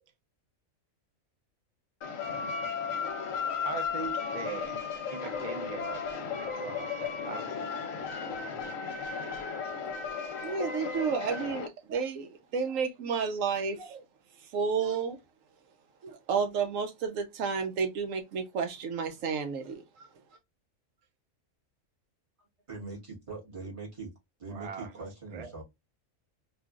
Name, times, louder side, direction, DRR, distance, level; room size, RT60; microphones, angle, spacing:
sound 1, 2.0-11.7, left 6 dB, 85° left, 1.1 m, -35 dB
voice 1, 3.6-4.8 5.1-7.7 24.5-25.1 25.3-25.5, right 6 dB, 60° right, 0.4 m, -41 dB
voice 2, 10.4-14.0 14.5-15.2 16.0-20.1, right 5 dB, 80° right, 1.0 m, -31 dB
voice 3, 22.7-24.1 24.4-25.6, right 3 dB, 25° right, 1.4 m, -41 dB
3.2 x 2.4 x 2.3 m
omnidirectional pair, 1.3 m